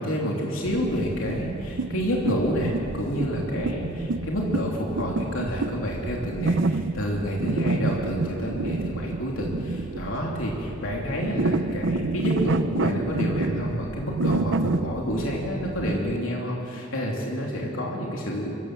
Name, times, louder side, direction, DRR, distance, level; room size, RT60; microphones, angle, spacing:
voice 1, 0.0-18.5, equal, 90° left, -2 dB, 3.1 m, -29 dB
sound 1, 0.6-16.2, right 3 dB, 65° right, 0.7 m, -29 dB
25.0 x 15.5 x 7.6 m, 2.8 s
head